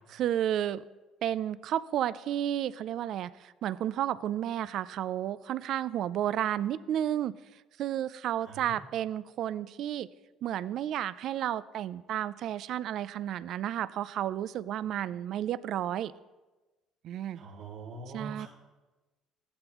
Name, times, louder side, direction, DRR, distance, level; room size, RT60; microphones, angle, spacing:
voice 1, 0.1-0.8 1.2-7.4 7.8-10.1 10.4-16.1 17.0-17.4 18.1-18.5, right 11 dB, 60° right, 17 dB, 0.3 m, -32 dB
voice 2, 8.4-8.8 17.4-18.5, right 3 dB, 75° right, -4 dB, 2.2 m, -43 dB
14.5 x 11.5 x 3.0 m, 1.1 s
cardioid pair, 135°, 0 cm